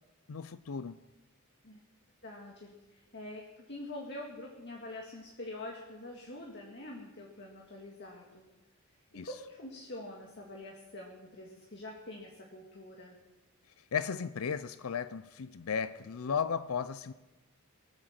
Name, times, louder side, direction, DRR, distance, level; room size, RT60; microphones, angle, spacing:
voice 1, 0.3-1.0 9.1-9.3 13.9-17.1, left 6 dB, 85° left, 0.5 m, -35 dB
voice 2, 2.2-8.4 9.1-13.2, left 1 dB, 55° left, 1.9 m, -45 dB
23.0 x 7.8 x 7.4 m
head